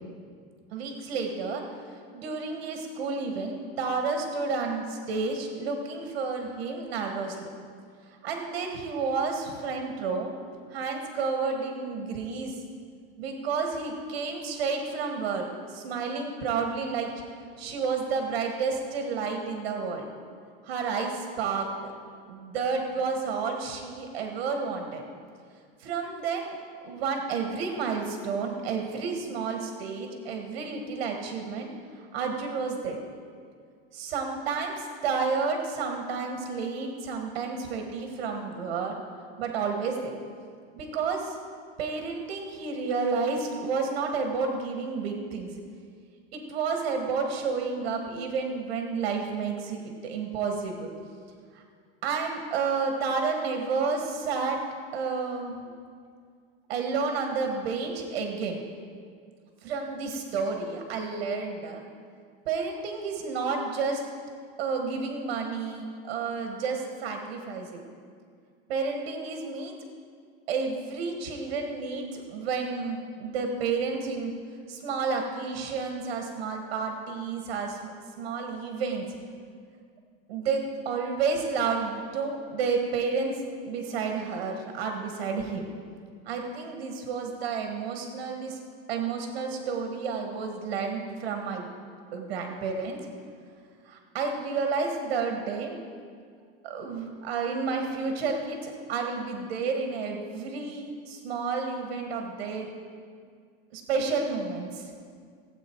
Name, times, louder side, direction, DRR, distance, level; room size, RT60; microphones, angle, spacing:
voice 1, 0.7-1.6 2.1-7.5 8.1-10.3 10.7-12.6 13.2-17.1 17.6-20.1 20.6-21.9 22.3-25.0 25.8-26.6 26.8-33.0 33.9-38.9 39.4-40.1 40.7-41.4 41.8-45.5 46.3-50.9 51.5-51.6 52.0-54.6 54.9-55.5 56.7-58.6 59.6-61.8 62.4-64.0 64.6-67.8 68.7-69.7 70.5-74.3 74.7-77.9 78.2-79.0 80.3-85.7 86.2-88.6 88.9-91.7 92.1-93.0 93.8-95.8 96.6-102.7 103.7-104.9, right 5 dB, 85° right, 3 dB, 1.7 m, -31 dB
16.0 x 8.3 x 4.6 m, 2.1 s
supercardioid pair, 170°, 30 cm